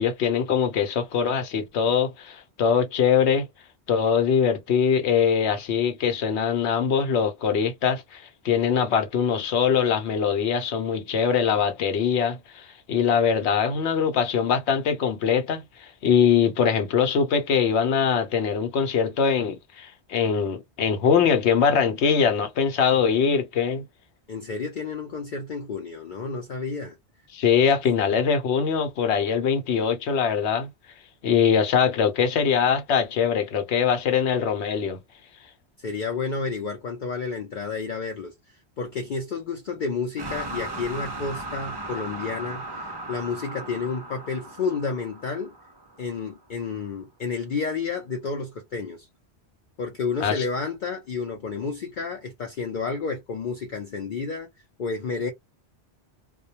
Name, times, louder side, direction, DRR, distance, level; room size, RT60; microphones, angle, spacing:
voice 1, 0.0-3.5 3.9-23.8 27.3-30.7 31.2-35.0 50.2-50.4, left 7 dB, 80° left, 0.9 m, -22 dB
voice 2, 24.3-26.9 35.8-38.3 38.8-45.6 46.0-49.1 49.8-54.5 54.8-55.3, left 4 dB, 55° left, 0.6 m, -30 dB
sound 1, 40.2-46.2, right 1 dB, 40° right, 0.3 m, -36 dB
2.2 x 2.1 x 2.7 m
omnidirectional pair, 1.1 m